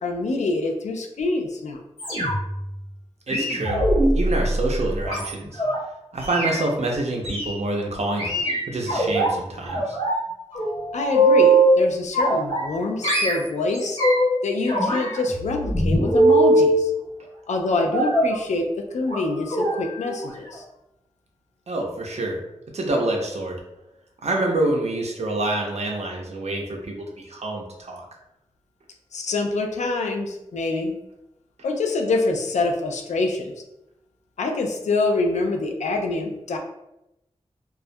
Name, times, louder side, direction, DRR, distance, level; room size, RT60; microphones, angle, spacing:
voice 1, 0.0-1.8 10.9-14.0 14.4-16.9 17.5-20.6 29.1-31.0 31.6-33.5 34.4-36.6, left 3 dB, 90° left, 3 dB, 0.4 m, -25 dB
sound 1, 2.0-2.6 3.3-5.8 6.2-6.6 7.2-7.5 8.2-9.3 9.7-10.2 10.5-11.7 12.1-12.8 13.0-14.3 14.7-16.7 17.9-18.4 19.0-19.2 19.5-19.7 20.0-20.2 20.5-20.6, right 1 dB, 55° left, 1.1 m, -21 dB
voice 2, 3.3-3.9 4.1-5.6 6.1-8.4 8.7-10.0 21.7-22.4 22.7-23.6 24.2-28.0, right 2 dB, 70° right, 1 dB, 0.5 m, -26 dB
2.3 x 2.1 x 2.6 m, 0.88 s
wide cardioid pair, 75°, 12 cm